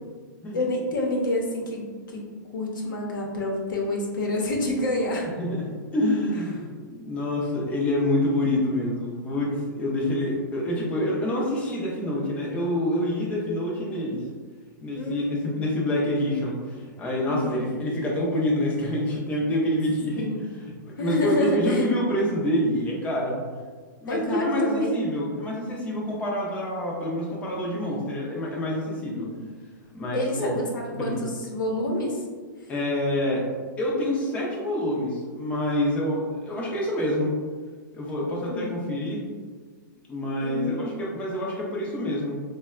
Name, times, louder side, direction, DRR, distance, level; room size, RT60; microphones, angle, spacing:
voice 1, 0.5-2.2 2.5-5.3 6.3-6.4 14.9-15.7 17.3-17.7 20.2-20.4 21.0-21.9 24.1-24.9 29.0-29.4 30.1-30.6 31.0-32.2 38.5-38.8 40.4-40.9, left 2 dB, 80° left, -1 dB, 0.8 m, -28 dB
voice 2, 5.4-14.2 14.8-23.4 24.0-29.3 29.9-30.5 30.9-31.2 32.7-33.4 33.8-37.3 37.9-39.2 40.1-42.3, left 1 dB, 10° left, -4 dB, 0.5 m, -27 dB
3.4 x 2.1 x 2.3 m, 1.5 s
hypercardioid pair, 145°, 11 cm